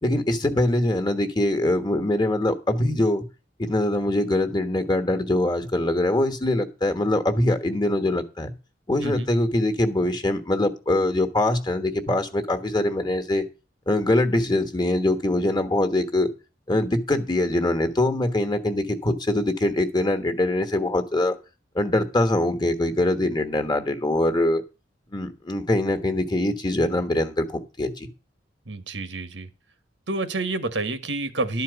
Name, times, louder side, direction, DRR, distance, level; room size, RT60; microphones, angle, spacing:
voice 1, 0.0-3.3 3.6-8.5 8.9-13.4 13.9-16.3 16.7-21.4 21.7-24.6 25.1-28.1, left 1 dB, 25° left, 1.3 m, -23 dB
voice 2, 28.7-29.5 30.1-31.6, right 2 dB, 85° right, 1.3 m, -28 dB
12.0 x 4.6 x 8.0 m
head